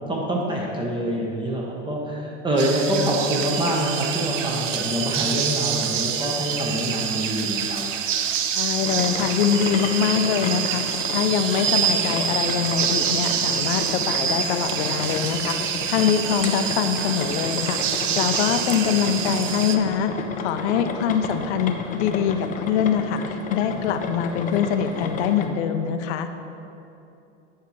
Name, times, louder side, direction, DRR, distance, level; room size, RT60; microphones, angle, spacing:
voice 1, 0.1-7.9, equal, 15° right, -2 dB, 0.9 m, -25 dB
sound 1, 2.6-19.8, right 8 dB, 80° right, 0.6 m, -26 dB
voice 2, 8.6-26.3, left 8 dB, 65° left, 8 dB, 0.6 m, -24 dB
sound 2, 8.8-25.5, left 5 dB, 20° left, 0.4 m, -32 dB
9.4 x 5.6 x 3.1 m, 2.8 s
hypercardioid pair, 105°, 37 cm